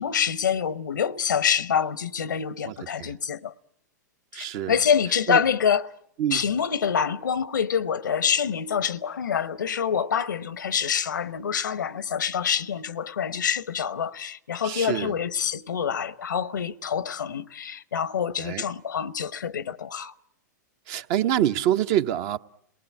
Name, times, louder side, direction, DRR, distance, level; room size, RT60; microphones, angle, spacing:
voice 1, 0.0-3.5 4.3-5.9 6.3-20.1, left 7 dB, 85° left, 0.9 m, -26 dB
voice 2, 2.6-3.1 4.3-4.7 5.3-5.4 6.2-6.4 14.6-15.1 18.4-18.6 20.9-22.4, right 11 dB, 45° right, 0.9 m, -26 dB
27.5 x 19.0 x 8.4 m
hypercardioid pair, 115°, 10 cm